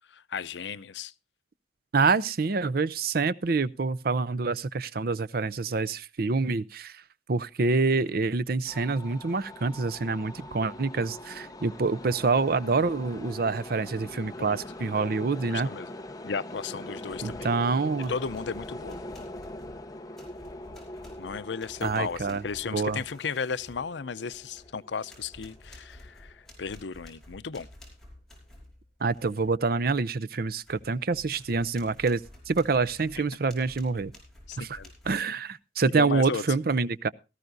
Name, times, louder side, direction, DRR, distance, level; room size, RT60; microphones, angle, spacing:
voice 1, 0.1-1.1 14.4-14.6 15.4-15.9 16.2-17.5 18.1-19.0 21.2-27.7 34.5-34.9 36.0-36.4, left 5 dB, 80° left, 0.6 m, -35 dB
voice 2, 1.9-7.0 7.3-15.7 17.2-18.1 21.8-22.4 22.7-23.0 29.0-32.2 32.5-34.1 34.6-34.8 35.1-37.1, right 4 dB, 55° right, 0.6 m, -26 dB
sound 1, 8.7-26.4, left 1 dB, 20° left, 0.9 m, -43 dB
sound 2, 17.1-17.6 18.0-24.7 25.1-29.5 29.9-30.0 30.4-35.1, left 1 dB, 5° left, 5.4 m, -51 dB
18.0 x 14.0 x 2.6 m
head